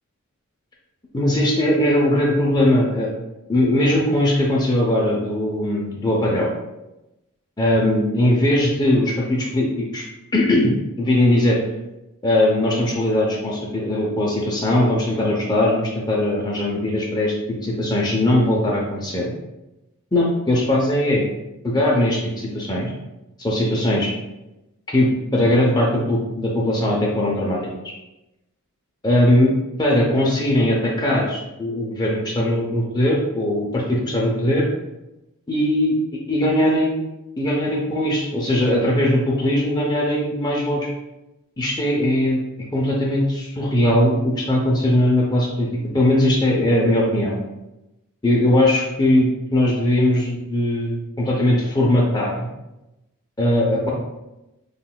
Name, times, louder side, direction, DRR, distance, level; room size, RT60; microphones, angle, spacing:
voice 1, 1.1-3.1 3.5-6.5 7.6-10.0 10.3-11.6 12.2-17.3 17.6-19.3 20.1-21.2 21.6-22.9 23.4-24.1 24.9-27.6 29.0-34.7 35.5-35.9 36.3-37.0 37.4-40.9 41.6-42.4 42.7-45.7 45.9-47.4 48.2-52.5 53.4-53.9, left 1 dB, 20° left, -3 dB, 0.6 m, -20 dB
5.3 x 3.9 x 2.2 m, 0.96 s
head